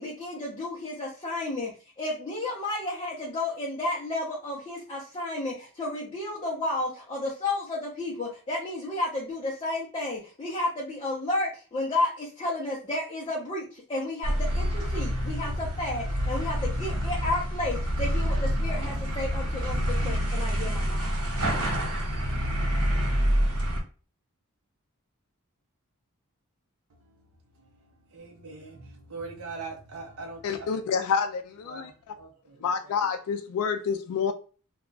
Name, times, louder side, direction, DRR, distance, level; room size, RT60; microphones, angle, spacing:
voice 1, 0.0-21.1, left 2 dB, 25° left, 0.6 m, -32 dB
sound 1, 14.2-23.8, equal, 90° right, 1.1 m, -27 dB
voice 2, 28.1-30.7 31.6-33.0, right 3 dB, 65° right, 0.6 m, -42 dB
voice 3, 30.4-32.1 32.6-34.3, left 6 dB, 75° left, 0.3 m, -28 dB
2.3 x 2.2 x 3.8 m
head